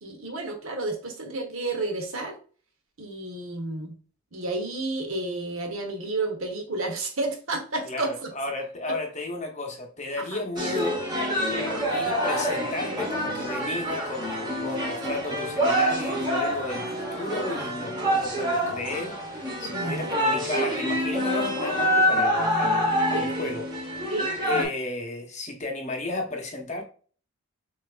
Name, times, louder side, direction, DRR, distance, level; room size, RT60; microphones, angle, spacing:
voice 1, 0.0-2.4 3.0-4.0 4.3-8.3 8.9-9.0 10.2-10.4 11.5-11.9 19.6-20.1 23.1-23.4 24.1-24.3, right 2 dB, 65° right, 1.2 m, -31 dB
voice 2, 7.8-11.1 11.8-23.6 24.4-26.8, left 2 dB, 30° left, 0.9 m, -33 dB
sound 1, 10.6-24.6, equal, 20° right, 1.1 m, -26 dB
6.3 x 2.7 x 2.4 m
head